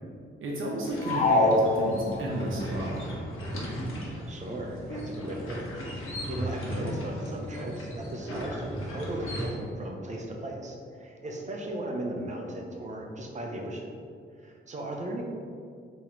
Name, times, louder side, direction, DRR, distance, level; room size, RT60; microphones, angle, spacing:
voice 1, 0.4-2.9, right 1 dB, 70° right, -3 dB, 0.8 m, -32 dB
sound 1, 0.8-9.4, equal, 75° left, 1.1 m, -37 dB
sound 2, 1.0-2.5, left 2 dB, 35° left, 0.5 m, -24 dB
voice 2, 1.2-1.5 4.3-5.7 5.9-13.9 14.4-15.2, right 1 dB, 35° right, 0 dB, 0.7 m, -37 dB
3.7 x 3.0 x 4.4 m, 2.3 s
cardioid pair, 115°, 21 cm